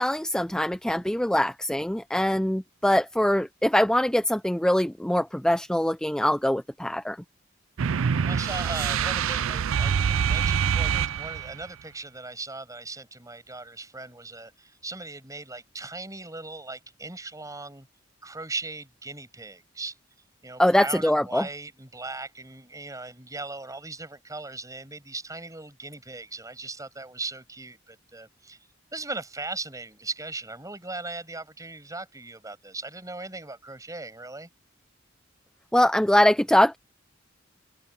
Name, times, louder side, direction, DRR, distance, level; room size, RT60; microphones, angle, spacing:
voice 1, 0.0-7.2 20.6-21.5 35.7-36.8, left 1 dB, 5° left, 0.5 m, -23 dB
sound 1, 7.8-11.6, right 7 dB, 80° right, 0.5 m, -25 dB
voice 2, 8.3-17.9 18.2-20.0 20.4-28.6 28.9-34.5, right 3 dB, 15° right, 7.2 m, -38 dB
open air
head